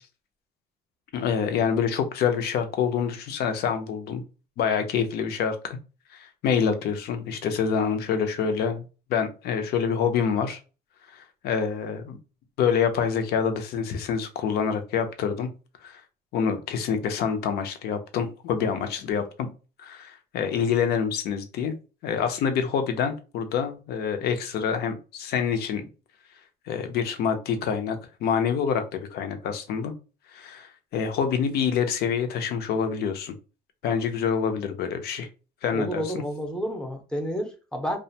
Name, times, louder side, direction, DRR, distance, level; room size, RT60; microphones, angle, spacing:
voice 1, 1.1-4.2 4.6-5.8 6.1-8.8 9.1-10.6 11.1-12.2 12.6-15.5 15.8-16.0 16.3-19.5 19.8-21.7 22.0-25.9 26.7-29.9 30.3-33.3 33.8-35.3 35.6-36.1, left 7 dB, 70° left, 0.5 m, -26 dB
voice 2, 35.7-38.0, equal, 5° left, 0.6 m, -30 dB
2.4 x 2.2 x 2.7 m
cardioid pair, 110°, 17 cm